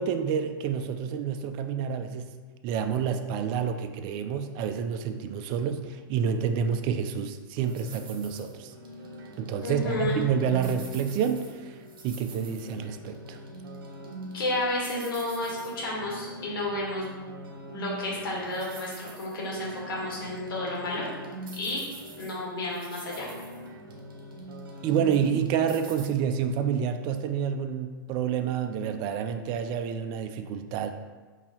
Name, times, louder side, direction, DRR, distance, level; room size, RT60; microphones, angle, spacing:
voice 1, 0.0-2.3 2.6-8.7 9.4-11.8 12.0-13.4 24.8-30.9, right 7 dB, 40° right, 8 dB, 0.4 m, -28 dB
sound 1, 7.6-26.1, equal, 70° right, 0.8 m, -43 dB
voice 2, 9.6-10.2 14.3-17.1 17.7-21.0 21.6-21.8 22.2-23.3, left 1 dB, 70° left, -4 dB, 1.5 m, -31 dB
5.3 x 2.7 x 2.8 m, 1.3 s
hypercardioid pair, 110°, 12 cm